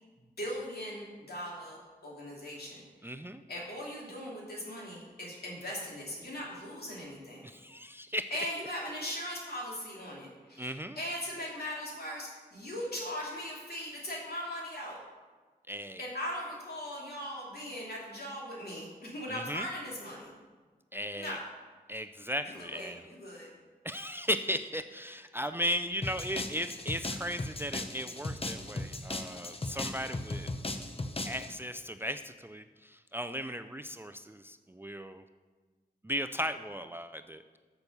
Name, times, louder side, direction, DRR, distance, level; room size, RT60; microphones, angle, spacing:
voice 1, 0.4-3.1 3.5-7.4 8.3-15.0 16.0-20.3 21.1-21.4 22.4-23.5, left 1 dB, 65° left, -4 dB, 2.8 m, -39 dB
voice 2, 3.0-3.4 7.4-8.5 10.6-11.0 15.7-16.0 19.3-19.7 20.9-21.4 21.9-23.0 23.8-30.5 31.3-35.2 36.0-37.4, equal, 15° right, 9 dB, 0.4 m, -36 dB
sound 1, 26.0-31.5, left 2 dB, 35° left, 0.9 m, -37 dB
7.1 x 5.9 x 6.6 m, 1.4 s
cardioid pair, 40°, 17 cm